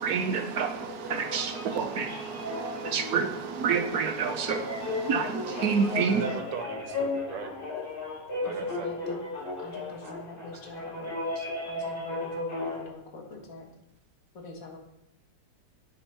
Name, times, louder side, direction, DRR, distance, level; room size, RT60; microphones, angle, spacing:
voice 1, 0.0-6.4 11.4-11.5, right 5 dB, 65° right, 1.2 m, -29 dB
sound 1, 0.7-12.8, left 2 dB, 30° left, 3.1 m, -35 dB
voice 2, 6.1-7.5 8.4-8.9, right 6 dB, 85° right, 1.7 m, -38 dB
voice 3, 8.4-9.2 9.6-11.2 11.7-13.7 14.3-14.8, left 2 dB, 55° left, 1.9 m, -44 dB
8.5 x 5.3 x 5.6 m
omnidirectional pair, 1.9 m